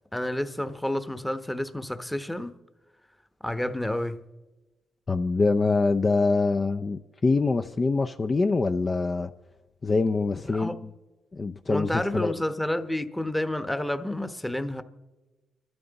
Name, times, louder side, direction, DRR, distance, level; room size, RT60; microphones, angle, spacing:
voice 1, 0.1-2.5 3.4-4.2 10.5-10.8 11.7-14.8, left 1 dB, 5° left, 1.0 m, -30 dB
voice 2, 5.1-9.3 9.8-10.9 11.3-12.3, left 3 dB, 35° left, 0.5 m, -24 dB
29.0 x 12.5 x 4.0 m
cardioid pair, 75°, 0 cm